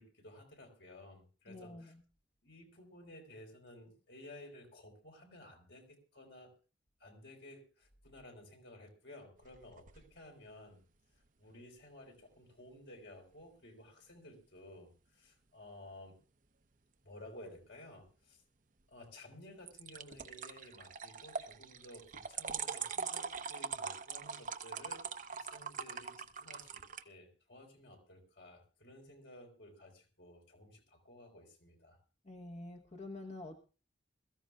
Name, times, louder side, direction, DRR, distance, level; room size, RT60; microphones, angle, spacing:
voice 1, 0.0-1.9 2.4-6.5 7.0-10.8 11.4-16.2 17.0-18.4 18.9-32.0, left 1 dB, 70° left, 2 dB, 4.5 m, -55 dB
voice 2, 1.5-2.0 32.2-33.6, left 2 dB, 40° left, 4 dB, 1.1 m, -47 dB
sound 1, 9.4-10.1 19.7-27.0, right 6 dB, 45° right, 0.8 m, -42 dB
22.0 x 14.5 x 2.4 m, 0.35 s
head